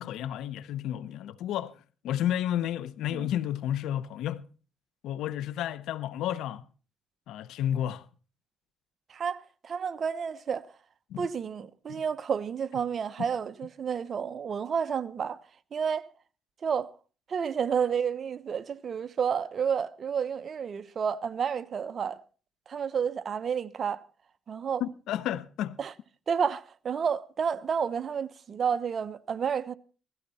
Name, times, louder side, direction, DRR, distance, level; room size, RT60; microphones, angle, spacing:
voice 1, 0.0-1.8 2.0-4.5 5.0-6.6 7.3-8.1 11.1-11.3 11.9-12.0 24.8-25.8, left 11 dB, 85° left, 0.8 m, -31 dB
voice 2, 9.1-10.7 11.2-15.4 15.7-16.0 16.6-16.9 17.3-22.2 22.7-24.0 24.5-24.8 25.8-25.9 26.3-29.7, right 7 dB, 50° right, 0.9 m, -30 dB
17.0 x 15.0 x 4.2 m
cardioid pair, 90°, 0 cm